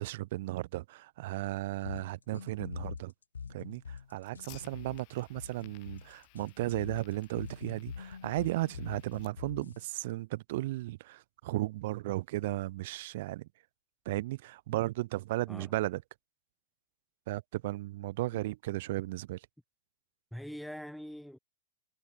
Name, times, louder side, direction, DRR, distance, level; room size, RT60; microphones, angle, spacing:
voice 1, 0.0-3.1 3.5-13.5 14.1-16.0 17.3-19.4, right 17 dB, 60° right, 0.6 m, -35 dB
sound 1, 1.8-9.9, left 6 dB, 90° left, 1.0 m, -44 dB
Fire, 3.6-9.6, left 40 dB or more, 50° left, 2.0 m, -58 dB
voice 2, 20.3-21.4, equal, ahead, 1.0 m, -43 dB
hypercardioid pair, 105°, 0 cm